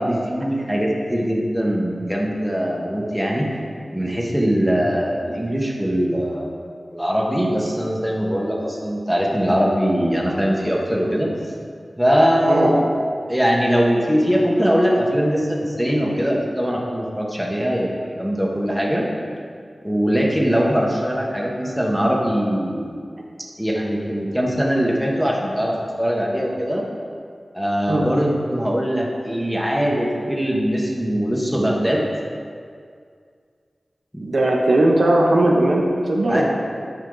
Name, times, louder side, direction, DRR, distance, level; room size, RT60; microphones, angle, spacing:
voice 1, 0.0-3.5 3.9-6.5 6.9-11.3 12.0-12.9 13.3-19.0 19.8-22.9 23.6-26.8 27.5-32.1 34.1-34.2 36.3-36.4, equal, ahead, -3 dB, 1.2 m, -21 dB
voice 2, 34.2-36.4, right 1 dB, 65° right, -1 dB, 0.9 m, -18 dB
8.1 x 5.9 x 3.9 m, 2.2 s
wide cardioid pair, 75°, 0 cm